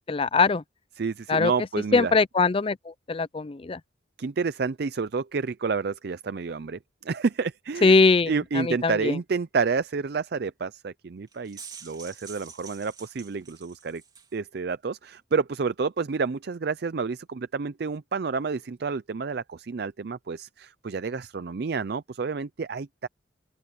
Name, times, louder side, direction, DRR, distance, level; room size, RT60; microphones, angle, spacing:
voice 1, 0.1-0.6 1.3-1.5 1.9-3.8 7.8-9.2, left 4 dB, 30° left, 0.4 m, -22 dB
voice 2, 1.0-2.1 4.2-7.9 8.3-14.0 14.3-23.1, right 4 dB, 55° right, 0.4 m, -29 dB
sound 1, 11.3-14.3, right 6 dB, 20° right, 3.2 m, -46 dB
open air
head